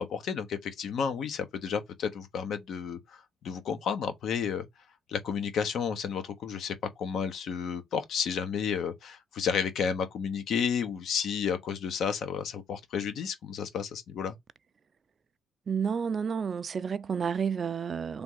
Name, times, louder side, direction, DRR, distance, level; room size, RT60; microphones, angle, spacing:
voice 1, 0.0-4.6 5.1-14.3, left 7 dB, 70° left, 0.9 m, -32 dB
voice 2, 15.7-18.2, right 6 dB, 45° right, 0.3 m, -30 dB
3.4 x 2.6 x 4.6 m
cardioid pair, 90°, 0 cm